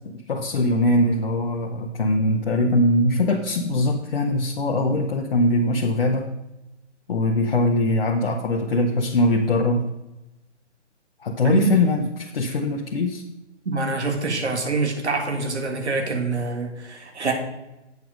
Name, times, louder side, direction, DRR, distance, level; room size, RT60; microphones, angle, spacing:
voice 1, 0.1-6.3 7.1-9.9 11.2-13.2, left 1 dB, 50° left, 1 dB, 0.9 m, -21 dB
voice 2, 11.4-11.7 13.7-17.3, right 3 dB, 70° right, 3 dB, 2.1 m, -25 dB
8.1 x 6.7 x 5.1 m, 0.95 s
figure-of-eight pair, 140°, 35 cm